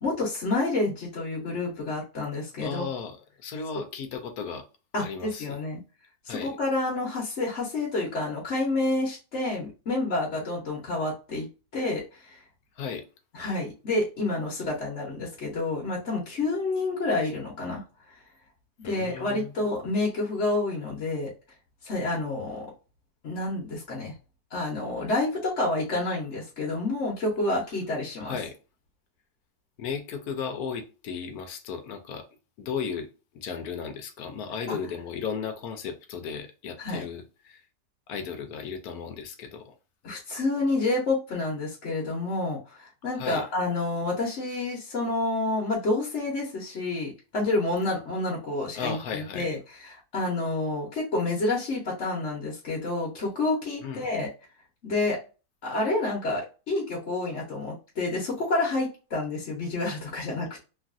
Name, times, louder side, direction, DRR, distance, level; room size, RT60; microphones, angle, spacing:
voice 1, 0.0-2.9 4.9-5.8 6.2-11.5 11.7-12.4 13.3-17.8 18.1-18.2 18.8-21.3 21.8-22.7 23.2-24.1 24.5-28.4 34.7-34.8 36.8-37.0 40.0-54.3 54.8-55.2 55.6-60.6, left 2 dB, 50° left, 1.0 m, -29 dB
voice 2, 2.6-4.7 5.0-5.6 6.3-6.6 12.8-13.1 18.8-19.5 28.2-28.6 29.8-32.3 32.6-33.1 33.3-37.6 38.1-39.7 43.2-43.4 48.7-49.5 53.8-54.1, left 6 dB, 70° left, 1.0 m, -35 dB
3.0 x 2.5 x 2.4 m
omnidirectional pair, 2.0 m